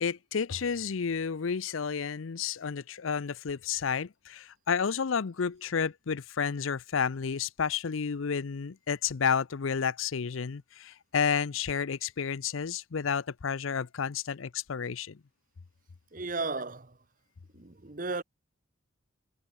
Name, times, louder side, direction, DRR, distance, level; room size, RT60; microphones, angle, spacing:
voice 1, 0.0-15.2, left 6 dB, 75° left, 0.6 m, -31 dB
voice 2, 16.1-17.0 17.5-18.2, right 3 dB, 40° right, 1.1 m, -34 dB
head